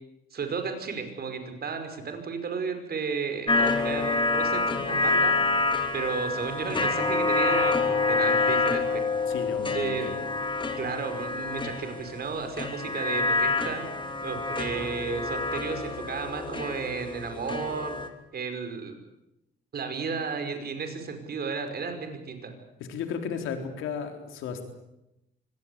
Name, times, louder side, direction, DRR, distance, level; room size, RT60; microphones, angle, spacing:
voice 1, 0.3-5.3 5.9-9.0 9.7-10.1 10.8-13.9 14.2-17.9 18.3-18.9 19.7-22.5, right 5 dB, 50° right, 6 dB, 5.3 m, -33 dB
sound 1, 3.5-18.1, left 3 dB, 25° left, 3.1 m, -27 dB
voice 2, 9.3-10.2 22.9-24.6, left 6 dB, 90° left, 6 dB, 3.9 m, -34 dB
24.5 x 19.0 x 8.3 m, 0.86 s
cardioid pair, 90°, 20 cm